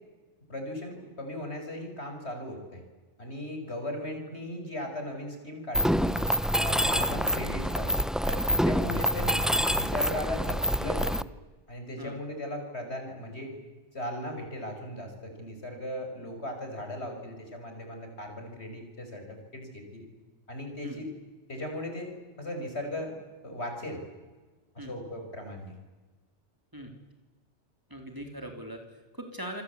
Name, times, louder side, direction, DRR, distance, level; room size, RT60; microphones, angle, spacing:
voice 1, 0.5-2.8 3.2-6.2 6.6-8.0 8.3-9.4 9.7-11.2 11.7-13.5 13.9-20.1 20.5-21.1 21.5-22.1 22.4-23.1 23.4-24.0 24.7-25.7, left 1 dB, 65° left, 4 dB, 6.2 m, -37 dB
Mechanisms, 5.7-11.2, equal, ahead, 0.4 m, -26 dB
voice 2, 27.9-29.6, equal, 15° right, 3 dB, 3.7 m, -41 dB
27.5 x 23.5 x 8.5 m, 1.3 s
omnidirectional pair, 1.2 m